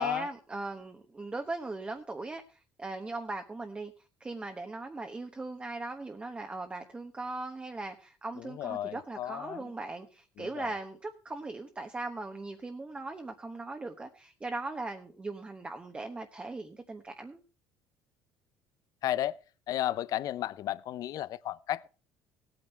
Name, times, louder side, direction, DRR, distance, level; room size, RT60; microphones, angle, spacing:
voice 1, 0.0-3.9 4.2-17.4, right 2 dB, 15° right, 1.1 m, -39 dB
voice 2, 8.4-9.7 10.4-10.7 19.0-19.4 19.7-21.9, left 13 dB, 55° left, 0.6 m, -33 dB
17.0 x 9.0 x 4.5 m
cardioid pair, 120°, 7 cm